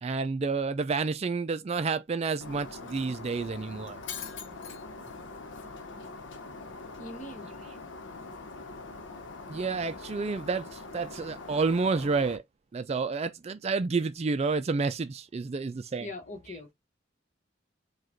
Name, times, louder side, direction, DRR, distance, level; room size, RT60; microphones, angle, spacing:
voice 1, 0.0-4.0 9.5-12.4 12.7-16.1, right 4 dB, 35° right, 0.3 m, -30 dB
Shatter, 2.4-12.4, left 3 dB, 75° left, 1.0 m, -43 dB
voice 2, 7.0-7.5 16.0-16.7, left 2 dB, 40° left, 1.3 m, -42 dB
4.9 x 2.4 x 4.4 m
head